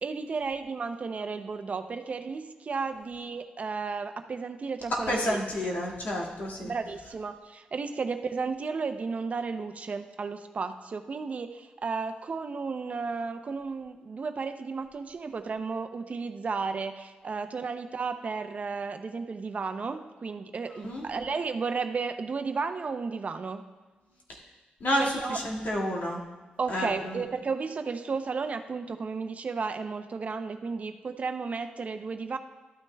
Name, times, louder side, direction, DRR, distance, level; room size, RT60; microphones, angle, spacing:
voice 1, 0.0-5.4 6.6-23.6 25.0-25.4 26.6-32.4, right 4 dB, 50° right, 8 dB, 0.5 m, -33 dB
voice 2, 4.9-6.7 20.8-21.1 24.3-24.4 24.8-26.2 26.7-27.2, equal, 70° left, -3 dB, 1.9 m, -30 dB
12.5 x 9.4 x 2.2 m, 1.3 s
cardioid pair, 100°, 3 cm